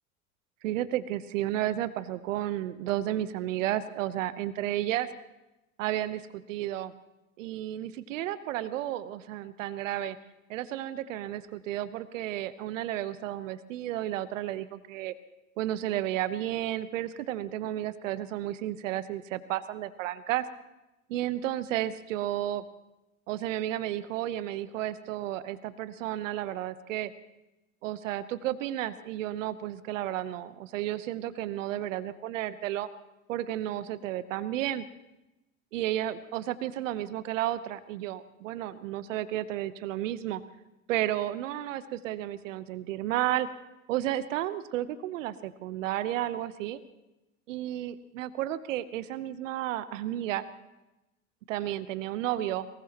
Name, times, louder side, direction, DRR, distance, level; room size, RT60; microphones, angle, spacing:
voice 1, 0.6-5.1 5.8-6.9 7.4-10.2 10.5-15.1 15.6-20.5 21.1-22.6 23.3-27.1 27.8-32.9 33.3-34.9 35.7-40.4 40.9-43.5 43.9-46.8 47.5-50.4 51.5-52.7, right 13 dB, 70° right, 14 dB, 1.0 m, -32 dB
23.0 x 20.5 x 3.0 m, 0.96 s
hypercardioid pair, 85°, 39 cm